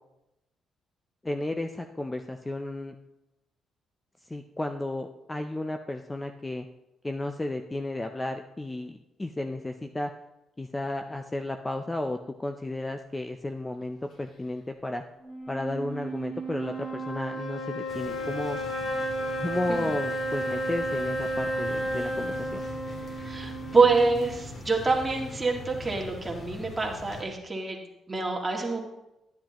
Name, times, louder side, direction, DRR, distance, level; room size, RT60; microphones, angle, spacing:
voice 1, 1.2-3.0 4.3-6.7 7.0-10.1 10.6-15.0 15.5-18.6 19.4-22.6, left 2 dB, 15° left, 6 dB, 0.5 m, -33 dB
sound 1, 15.2-24.6, right 1 dB, 65° left, 2.9 m, -33 dB
sound 2, 17.9-27.2, left 2 dB, 45° left, 2.0 m, -42 dB
voice 2, 23.2-28.8, right 4 dB, 20° right, 0 dB, 1.9 m, -26 dB
10.5 x 10.0 x 3.0 m, 0.91 s
cardioid pair, 90°, 0 cm